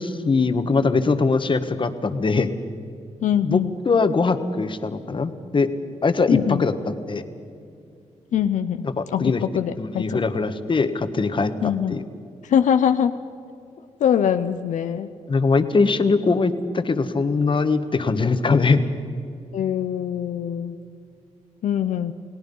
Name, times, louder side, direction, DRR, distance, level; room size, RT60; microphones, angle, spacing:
voice 1, 0.0-2.5 3.4-3.6 3.8-5.7 6.0-7.2 8.8-9.4 9.8-12.0 15.3-18.8, left 4 dB, 40° left, 9 dB, 1.5 m, -21 dB
voice 2, 3.2-3.7 6.3-6.6 8.3-8.9 9.1-10.2 11.6-12.0 12.4-13.1 14.0-15.1 19.5-20.8 21.6-22.1, left 9 dB, 85° left, 9 dB, 0.6 m, -22 dB
29.5 x 18.5 x 5.5 m, 2.5 s
cardioid pair, 75°, 12 cm